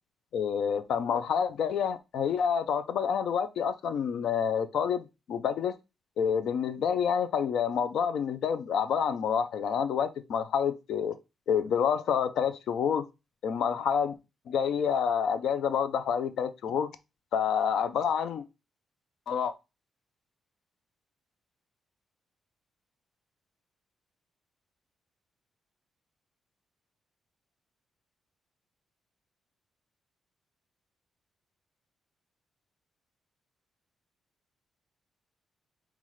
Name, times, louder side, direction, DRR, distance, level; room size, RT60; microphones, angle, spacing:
voice 1, 0.3-5.7 6.2-11.2 11.5-13.0 13.4-14.1 14.5-16.9 17.3-18.4 19.3-19.5, left 7 dB, 75° left, 0.5 m, -28 dB
5.5 x 2.4 x 3.1 m
cardioid pair, 85°, 0 cm